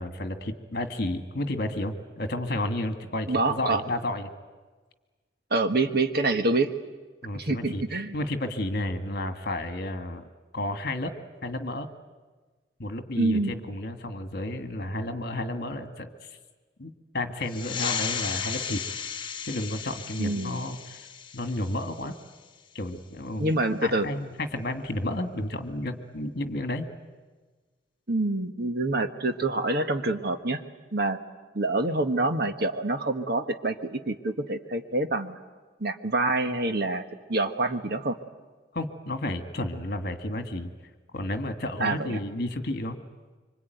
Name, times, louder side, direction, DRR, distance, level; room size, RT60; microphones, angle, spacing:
voice 1, 0.0-4.3 7.2-10.2 10.5-11.1 11.4-11.9 12.8-16.3 16.8-18.8 19.4-21.0 21.3-22.2 22.7-26.9 38.7-40.7 41.1-43.0, left 1 dB, 55° left, 7 dB, 1.9 m, -32 dB
voice 2, 3.3-3.8 5.5-6.7 7.3-8.2 13.2-13.5 20.2-20.6 23.4-24.1 28.1-30.6 30.9-31.2 31.5-35.4 35.8-37.0 37.3-38.2 41.8-42.2, right 2 dB, 55° right, 8 dB, 1.4 m, -26 dB
sound 1, 17.4-22.6, left 7 dB, 25° left, 1.1 m, -35 dB
25.5 x 25.0 x 9.3 m, 1.3 s
head